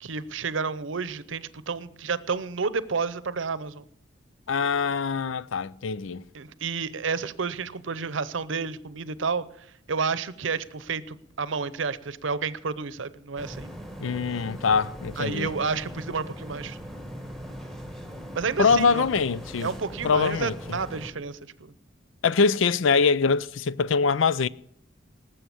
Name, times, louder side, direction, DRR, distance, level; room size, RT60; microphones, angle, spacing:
voice 1, 0.0-3.8 6.3-9.4 9.9-13.7 15.2-16.8 18.3-19.1 19.6-21.7, right 5 dB, 75° right, 0.7 m, -30 dB
voice 2, 4.5-6.2 14.0-15.5 18.6-19.7 20.0-20.5 22.2-24.5, left 5 dB, 80° left, 0.5 m, -23 dB
sound 1, 13.4-21.1, equal, ahead, 1.4 m, -40 dB
19.0 x 7.7 x 7.0 m
head